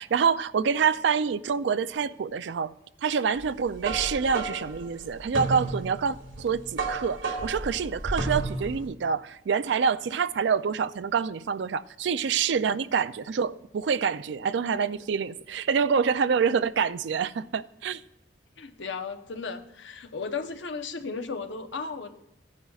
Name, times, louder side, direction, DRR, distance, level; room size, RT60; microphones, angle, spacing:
voice 1, 0.0-2.7 3.0-18.0, right 6 dB, 65° right, 0.4 m, -26 dB
sound 1, 3.4-8.9, right 2 dB, 85° right, 2.1 m, -33 dB
voice 2, 18.6-22.1, left 4 dB, 70° left, 0.8 m, -35 dB
15.5 x 9.7 x 2.4 m
head